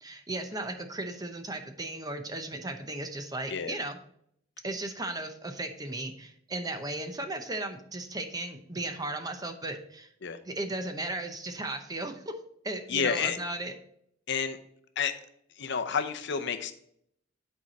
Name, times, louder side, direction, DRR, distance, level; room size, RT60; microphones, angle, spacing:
voice 1, 0.0-4.0 4.6-10.1 10.5-12.4 12.6-13.7, right 2 dB, 20° right, 7 dB, 0.7 m, -36 dB
voice 2, 12.9-13.4 14.3-14.6 15.0-15.1 15.6-16.7, left 6 dB, 60° left, 8 dB, 0.7 m, -30 dB
8.9 x 4.7 x 4.1 m, 0.70 s
head